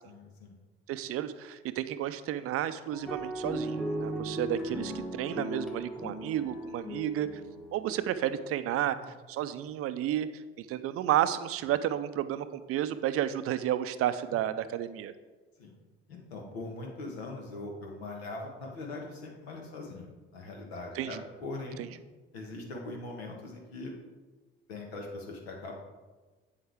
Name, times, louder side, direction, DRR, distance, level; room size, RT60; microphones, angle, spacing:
voice 1, 0.0-0.6 9.0-9.1 15.6-15.7 16.1-21.8 22.3-23.9 24.7-25.7, left 2 dB, 80° left, 0 dB, 1.4 m, -41 dB
voice 2, 0.9-7.4 7.7-8.9 9.3-15.1 20.9-21.2 21.8-21.9, right 11 dB, 50° right, 13 dB, 0.5 m, -32 dB
sound 1, 2.9-8.5, right 1 dB, ahead, 1.0 m, -37 dB
7.9 x 7.3 x 3.5 m, 1.3 s
figure-of-eight pair, 55°, 31 cm